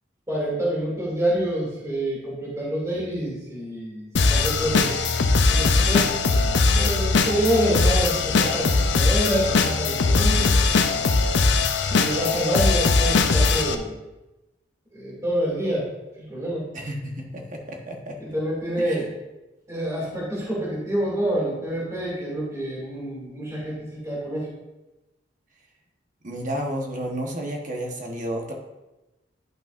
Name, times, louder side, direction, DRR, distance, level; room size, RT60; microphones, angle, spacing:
voice 1, 0.3-5.0 5.4-6.1 6.7-10.7 11.9-14.0 14.9-15.9 16.3-16.7 18.2-19.1 19.7-24.5, right 1 dB, 15° right, -6 dB, 2.5 m, -27 dB
sound 1, 4.2-13.8, left 4 dB, 70° left, 0.6 m, -20 dB
voice 2, 16.7-18.2 18.8-19.0 26.2-28.5, right 1 dB, 45° right, 1 dB, 1.2 m, -31 dB
10.5 x 5.5 x 2.6 m, 1.0 s
head